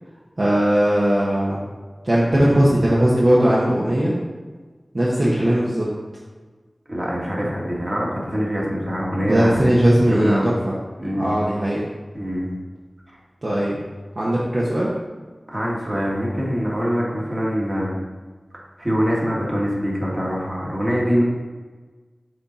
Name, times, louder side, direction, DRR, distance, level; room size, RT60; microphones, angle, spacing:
voice 1, 0.4-1.6 2.0-4.1 4.9-5.9 9.2-10.5 11.2-11.8 13.4-13.8 14.2-14.9, right 1 dB, 55° right, -7 dB, 1.2 m, -18 dB
voice 2, 6.9-9.6 10.1-10.5 11.0-11.3 12.1-12.5 15.5-17.9 18.8-21.2, equal, 40° right, -4 dB, 1.8 m, -24 dB
6.7 x 4.0 x 4.3 m, 1.4 s
wide cardioid pair, 50°, 0 cm